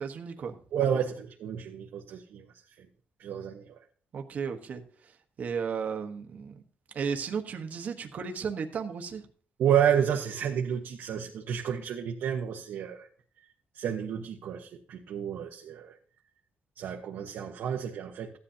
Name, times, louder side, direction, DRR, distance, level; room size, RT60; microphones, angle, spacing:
voice 1, 0.0-1.0 4.1-5.1 5.4-6.6 6.9-9.2, right 6 dB, 45° right, 1.2 m, -35 dB
voice 2, 0.7-2.4 3.2-3.7 9.6-13.1 13.7-15.9 16.8-18.4, right 8 dB, 70° right, 1.2 m, -30 dB
15.0 x 10.5 x 2.8 m
cardioid pair, 160°, 4 cm